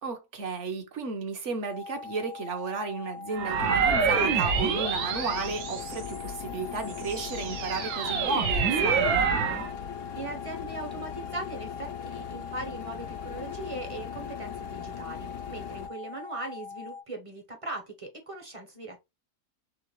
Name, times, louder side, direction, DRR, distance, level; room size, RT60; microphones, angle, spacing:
voice 1, 0.0-9.3, right 4 dB, 55° right, 1.1 m, -33 dB
sound 1, 1.7-17.0, left 5 dB, 65° left, 1.0 m, -42 dB
sound 2, 3.3-6.3 6.8-9.7, right 6 dB, 70° right, 1.2 m, -27 dB
sound 3, 3.4-15.9, left 10 dB, 85° left, 1.2 m, -40 dB
voice 2, 10.1-19.0, right 2 dB, 30° right, 0.7 m, -39 dB
3.8 x 3.2 x 3.1 m
omnidirectional pair, 1.7 m